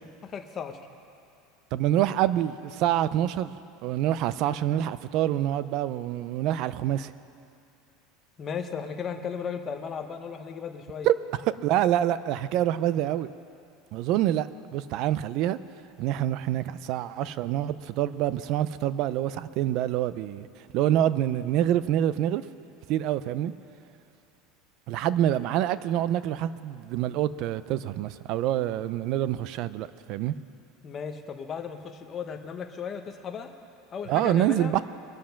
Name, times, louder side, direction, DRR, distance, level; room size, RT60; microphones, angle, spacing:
voice 1, 0.2-0.8 8.4-11.1 30.8-33.5 33.9-34.7, left 6 dB, 20° left, 5 dB, 0.8 m, -35 dB
voice 2, 1.7-3.5 3.8-7.1 11.0-13.3 13.9-15.6 16.0-20.5 20.7-22.4 22.9-23.5 24.9-30.3 34.1-34.8, right 12 dB, 40° right, 16 dB, 0.4 m, -26 dB
21.5 x 7.5 x 5.8 m, 2.7 s
cardioid pair, 175°, 0 cm